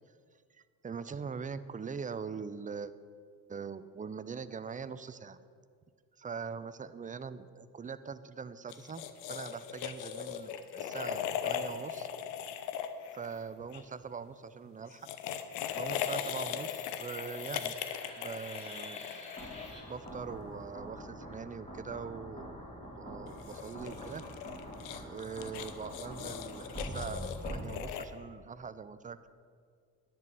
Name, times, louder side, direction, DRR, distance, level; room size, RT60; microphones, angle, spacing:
voice 1, 0.5-2.9 3.5-5.4 6.2-12.1 13.1-15.1 15.7-17.8 18.2-19.4 19.9-24.2 25.0-29.3, right 6 dB, 15° right, 13 dB, 0.5 m, -42 dB
sound 1, 8.7-13.8 14.9-20.1 23.3-28.1, left 9 dB, 75° left, 0.9 m, -39 dB
sound 2, 15.5-27.6, equal, 15° left, 3.3 m, -46 dB
10.5 x 6.1 x 8.2 m, 2.1 s
hypercardioid pair, 50°, 49 cm